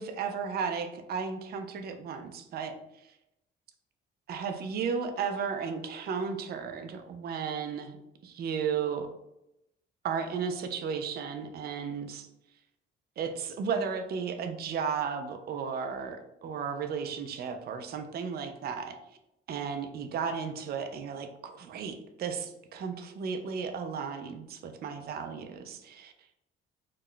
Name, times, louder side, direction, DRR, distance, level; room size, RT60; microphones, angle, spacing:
voice 1, 0.0-2.7 4.3-8.0 8.2-9.1 10.0-12.3 13.2-19.0 19.5-26.1, right 6 dB, 50° right, 6 dB, 0.4 m, -34 dB
2.3 x 2.1 x 3.6 m, 0.85 s
cardioid pair, 90°, 20 cm